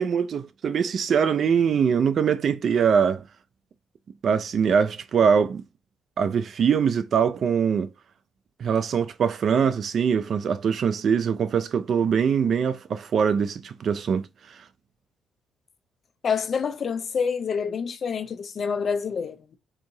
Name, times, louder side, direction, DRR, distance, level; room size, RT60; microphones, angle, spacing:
voice 1, 0.0-3.2 4.2-5.6 6.2-7.9 8.6-14.3, right 7 dB, 55° right, 0.3 m, -22 dB
voice 2, 16.2-19.6, left 6 dB, 50° left, 0.5 m, -27 dB
3.7 x 2.8 x 2.6 m
cardioid pair, 90°, 0 cm